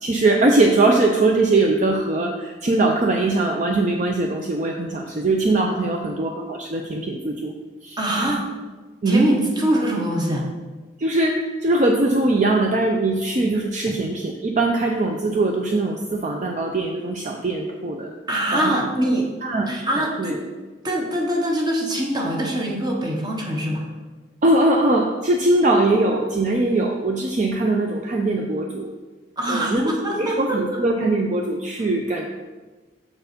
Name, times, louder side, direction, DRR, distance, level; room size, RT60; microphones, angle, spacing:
voice 1, 0.0-7.5 7.8-8.0 9.0-9.3 11.0-18.1 18.5-18.7 19.4-19.7 20.0-20.4 24.4-28.9 29.5-29.8 30.2-32.3, right 2 dB, 45° right, 1 dB, 0.5 m, -21 dB
voice 2, 8.0-8.4 9.0-10.5 18.3-19.3 19.7-20.4 20.8-23.9 29.4-30.6, right 1 dB, 25° right, -1 dB, 1.2 m, -23 dB
6.9 x 4.6 x 5.1 m, 1.3 s
head